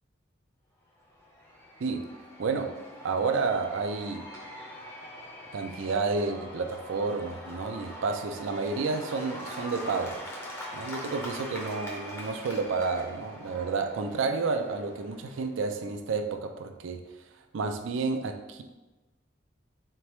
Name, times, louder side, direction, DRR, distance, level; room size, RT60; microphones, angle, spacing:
Cheering / Applause / Crowd, 1.0-15.7, equal, 15° left, 0.5 m, -43 dB
voice 1, 2.4-2.7 3.0-4.3 5.5-10.2 10.7-17.0 17.5-18.6, right 4 dB, 80° right, 7 dB, 0.4 m, -30 dB
3.9 x 3.3 x 3.0 m, 1.1 s
head